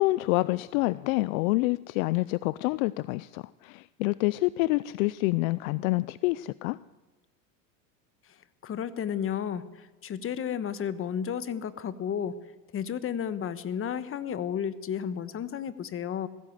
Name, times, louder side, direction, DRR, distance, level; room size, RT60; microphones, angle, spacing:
voice 1, 0.0-6.8, left 20 dB, 60° left, 19 dB, 0.6 m, -27 dB
voice 2, 8.6-12.4 12.7-16.3, left 8 dB, 25° left, 14 dB, 1.3 m, -32 dB
20.5 x 16.0 x 8.1 m, 1.2 s
supercardioid pair, 115°, 48 cm